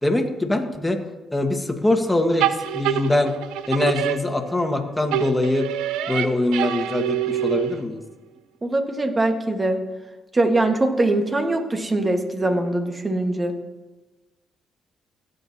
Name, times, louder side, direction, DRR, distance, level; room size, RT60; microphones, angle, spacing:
voice 1, 0.0-1.0 1.3-3.3 3.7-5.7 6.1-8.0, left 2 dB, 15° left, 4 dB, 1.6 m, -23 dB
sound 1, 2.4-4.8 5.1-8.0, right 11 dB, 85° right, 0.4 m, -26 dB
voice 2, 8.6-9.8 10.3-13.5, right 2 dB, 30° right, 5 dB, 1.6 m, -22 dB
16.0 x 8.2 x 2.8 m, 1.1 s
supercardioid pair, 55°, 0 cm